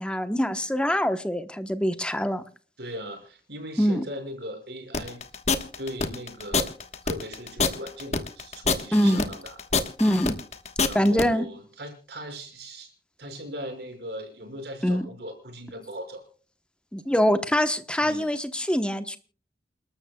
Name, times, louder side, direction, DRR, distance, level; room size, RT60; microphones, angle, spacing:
voice 1, 0.0-2.4 3.8-4.0 8.9-9.3 10.0-10.4 10.9-11.4 14.8-15.1 16.9-19.2, equal, 5° left, 9 dB, 0.9 m, -24 dB
voice 2, 2.8-5.2 5.8-6.7 7.0-9.6 10.8-12.9 13.2-16.2 18.0-18.3, equal, 65° right, 4 dB, 5.5 m, -39 dB
sound 1, 4.9-11.3, left 4 dB, 40° left, 1.2 m, -26 dB
29.5 x 12.5 x 2.3 m, 0.40 s
head